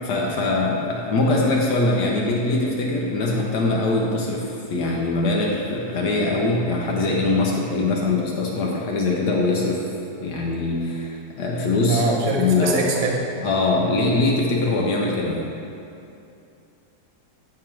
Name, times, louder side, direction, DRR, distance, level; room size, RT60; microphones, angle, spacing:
voice 1, 0.0-9.8 10.2-12.0 12.3-12.9 13.4-15.5, left 2 dB, 75° left, -2 dB, 1.3 m, -22 dB
voice 2, 11.9-13.1, right 3 dB, 60° right, 0 dB, 1.1 m, -23 dB
9.0 x 3.8 x 4.4 m, 2.6 s
omnidirectional pair, 1.7 m